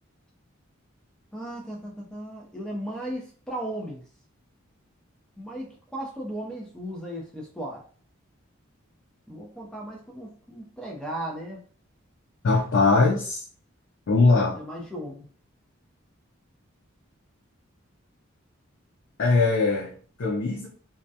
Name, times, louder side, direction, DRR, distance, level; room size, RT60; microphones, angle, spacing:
voice 1, 1.3-4.0 5.4-7.8 9.3-11.6 14.5-15.3, right 1 dB, 5° left, -2 dB, 0.5 m, -36 dB
voice 2, 12.4-13.4 14.1-14.6 19.2-20.7, left 3 dB, 70° left, -2 dB, 0.4 m, -21 dB
2.3 x 2.1 x 2.7 m, 0.43 s
head